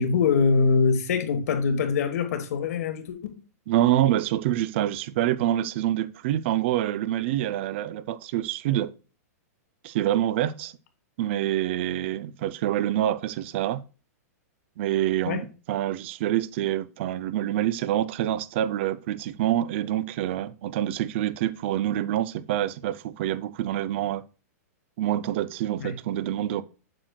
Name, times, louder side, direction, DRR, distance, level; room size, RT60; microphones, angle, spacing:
voice 1, 0.0-3.4 15.2-15.4 25.8-25.9, left 5 dB, 65° left, 1.3 m, -23 dB
voice 2, 3.7-8.9 9.8-10.7 11.2-13.8 14.8-24.2 25.0-26.6, right 12 dB, 45° right, 0.4 m, -26 dB
7.6 x 6.3 x 2.2 m
hypercardioid pair, 155°, 9 cm